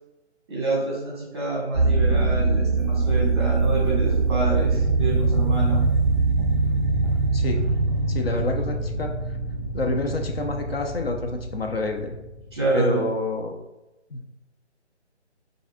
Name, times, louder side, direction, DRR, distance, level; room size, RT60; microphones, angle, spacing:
voice 1, 0.5-5.9 12.5-13.0, right 2 dB, 25° right, -4 dB, 0.8 m, -27 dB
sound 1, 1.7-13.2, right 3 dB, ahead, 1.0 m, -23 dB
voice 2, 8.1-9.1 9.7-12.1 12.7-13.6 14.1-14.2, left 2 dB, 60° left, 3 dB, 0.5 m, -28 dB
4.7 x 2.5 x 2.6 m, 0.97 s
figure-of-eight pair, 150°, 34 cm